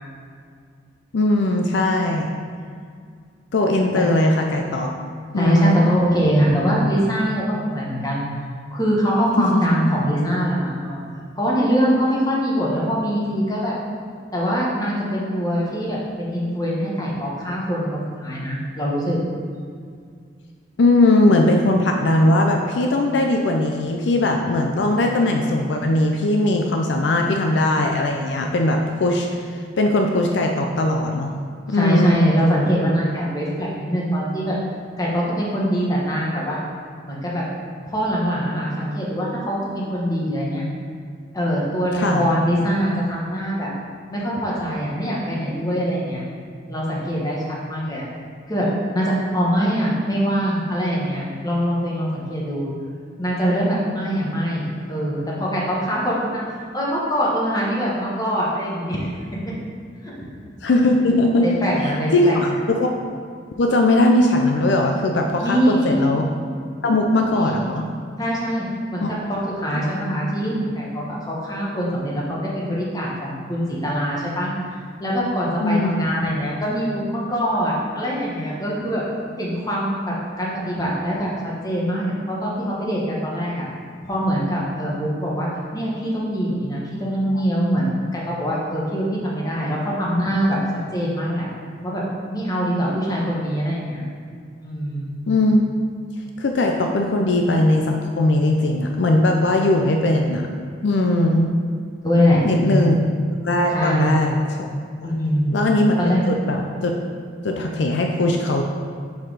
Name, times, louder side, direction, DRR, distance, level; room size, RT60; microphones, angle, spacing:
voice 1, 1.1-2.3 3.5-4.9 5.3-5.9 9.4-9.6 20.8-29.3 29.8-31.3 31.7-32.2 41.9-42.3 60.6-61.5 62.1-62.9 63.6-66.2 66.8-67.8 69.0-69.1 75.6-75.9 95.3-95.6 96.4-100.4 100.8-101.5 102.4-103.0 103.4-104.7 105.0-105.1 105.5-105.9 106.3-106.9 107.4-108.6, left 2 dB, 70° left, 2 dB, 0.5 m, -19 dB
voice 2, 5.4-8.3 8.7-11.0 11.4-13.7 14.3-19.2 31.7-34.6 35.0-36.6 37.0-37.5 37.9-40.6 41.3-43.7 44.1-46.2 46.7-48.0 48.5-52.7 53.2-56.4 56.7-59.1 61.4-62.5 65.4-66.0 67.2-67.7 68.2-68.6 68.9-74.5 75.0-79.0 79.4-83.7 84.0-90.6 90.9-91.5 91.8-92.0 92.3-94.0 94.6-95.1 102.0-103.0 103.7-104.1 105.0-105.6 106.0-106.2, equal, 20° left, -5 dB, 1.2 m, -23 dB
5.7 x 4.5 x 4.8 m, 2.1 s
head